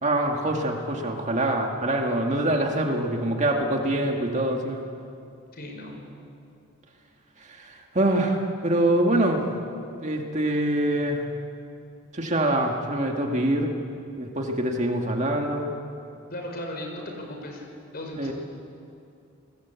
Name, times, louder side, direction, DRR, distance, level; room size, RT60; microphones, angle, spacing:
voice 1, 0.0-4.8 7.5-9.5 10.0-11.3 12.1-13.7 14.2-15.7 18.2-18.3, right 1 dB, 35° right, 2 dB, 2.1 m, -25 dB
voice 2, 5.5-6.0 16.3-17.7 17.9-18.3, left 1 dB, 45° left, 2 dB, 5.6 m, -36 dB
30.0 x 20.5 x 8.4 m, 2.5 s
head